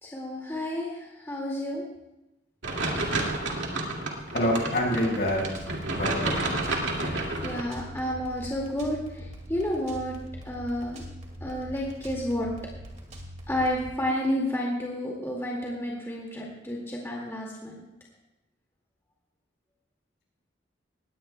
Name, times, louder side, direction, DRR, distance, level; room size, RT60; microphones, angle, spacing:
voice 1, 0.0-1.9 6.4-6.5 7.0-10.2 10.4-11.0 11.4-12.5 13.5-17.9, left 1 dB, 15° left, -3 dB, 2.1 m, -31 dB
sound 1, 2.6-7.6, right 2 dB, 75° right, 2.2 m, -30 dB
voice 2, 4.3-5.5 5.9-6.5, equal, 60° left, -2 dB, 4.8 m, -26 dB
sound 2, 5.3-13.9, equal, 35° right, 2.1 m, -43 dB
20.0 x 17.0 x 2.3 m, 0.96 s
head